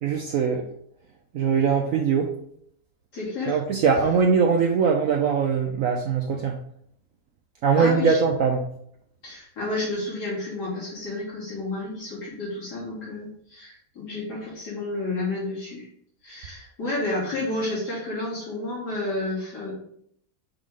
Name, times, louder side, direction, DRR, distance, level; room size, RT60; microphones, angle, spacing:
voice 1, 0.0-0.6 1.3-2.3 3.5-6.6 7.6-8.6, right 6 dB, 65° right, 2 dB, 0.9 m, -21 dB
voice 2, 3.1-3.6 7.8-8.2 9.2-15.9 16.2-19.7, left 2 dB, 75° left, -8 dB, 3.6 m, -31 dB
6.5 x 3.8 x 4.7 m, 0.68 s
omnidirectional pair, 1.7 m